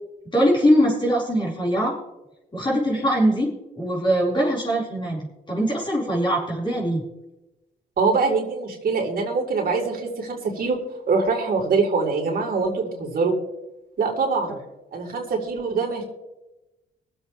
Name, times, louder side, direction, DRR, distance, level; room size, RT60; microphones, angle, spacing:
voice 1, 0.3-2.0 2.5-3.5 3.7-7.0, equal, 25° left, -5 dB, 4.6 m, -22 dB
voice 2, 8.0-10.8 11.1-13.3 14.0-14.6 14.9-16.0, right 4 dB, 55° right, -1 dB, 3.9 m, -23 dB
23.5 x 8.0 x 3.3 m, 0.99 s
cardioid pair, 80°, 18 cm